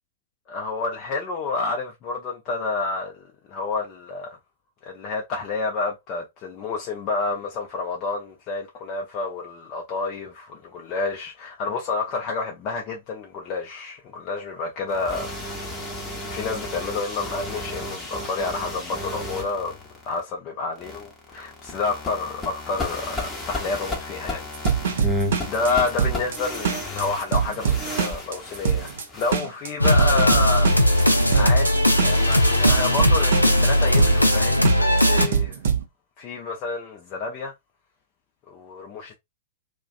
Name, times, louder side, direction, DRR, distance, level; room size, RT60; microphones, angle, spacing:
voice 1, 0.5-4.4 4.8-16.0 16.2-19.8 20.0-24.5 24.9-25.2 25.4-31.1 31.3-35.6 36.2-37.5 38.5-39.1, left 3 dB, 35° left, 0.5 m, -29 dB
sound 1, 14.9-20.2 20.8-34.5, left 2 dB, 10° left, 0.8 m, -34 dB
sound 2, 24.5-35.8, right 7 dB, 60° right, 0.6 m, -24 dB
sound 3, 29.8-35.3, left 1 dB, 90° left, 0.4 m, -18 dB
2.4 x 2.2 x 2.4 m
figure-of-eight pair, 100°, 0 cm